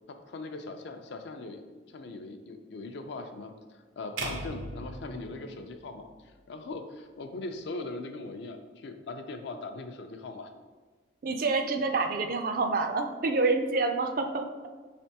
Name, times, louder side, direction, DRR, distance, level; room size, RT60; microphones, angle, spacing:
voice 1, 0.1-10.5, left 3 dB, 60° left, 7 dB, 0.4 m, -40 dB
sound 1, 4.2-6.4, right 2 dB, 85° right, 0.6 m, -39 dB
voice 2, 11.2-14.5, right 3 dB, 45° right, 6 dB, 0.3 m, -27 dB
5.2 x 3.3 x 2.8 m, 1.3 s
head